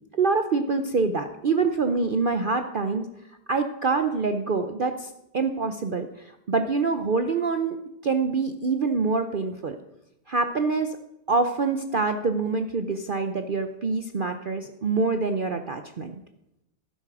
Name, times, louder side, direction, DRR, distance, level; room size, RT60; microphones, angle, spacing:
voice 1, 0.1-3.1 3.5-7.8 8.0-9.8 10.3-10.9 11.3-16.1, right 4 dB, 80° right, 7 dB, 0.4 m, -25 dB
12.0 x 9.6 x 6.1 m, 0.88 s
omnidirectional pair, 1.8 m